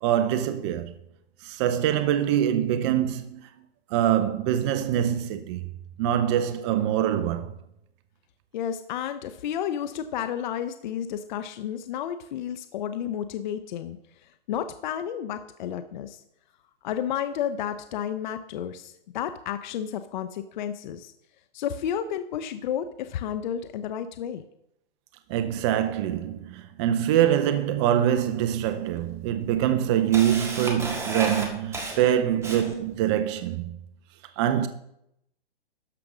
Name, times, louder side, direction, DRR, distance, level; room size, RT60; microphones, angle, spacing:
voice 1, 0.0-0.9 1.4-3.4 3.9-5.7 6.0-7.5 25.3-33.7 34.4-34.7, right 10 dB, 30° right, 0.6 m, -24 dB
voice 2, 8.5-16.2 16.8-21.1 21.5-24.4, left 9 dB, 50° left, 0.7 m, -32 dB
Camera, 28.0-28.1 28.9-29.0 29.5-32.9, right 2 dB, 10° right, 1.7 m, -32 dB
13.0 x 5.2 x 6.1 m
hypercardioid pair, 145°, 31 cm